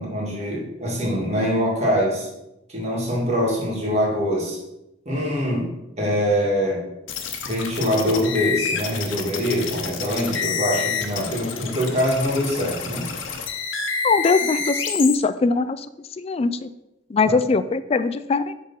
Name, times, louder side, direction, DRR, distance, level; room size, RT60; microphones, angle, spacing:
voice 1, 0.0-2.3 2.7-4.6 5.1-6.8 7.4-13.1 17.2-17.3, equal, 35° right, -3 dB, 2.0 m, -24 dB
sound 1, 7.1-15.2, left 6 dB, 85° left, 0.8 m, -28 dB
voice 2, 14.0-15.9 16.2-16.7 17.1-18.5, left 4 dB, 30° left, 13 dB, 0.3 m, -21 dB
6.4 x 3.6 x 5.4 m, 0.91 s
head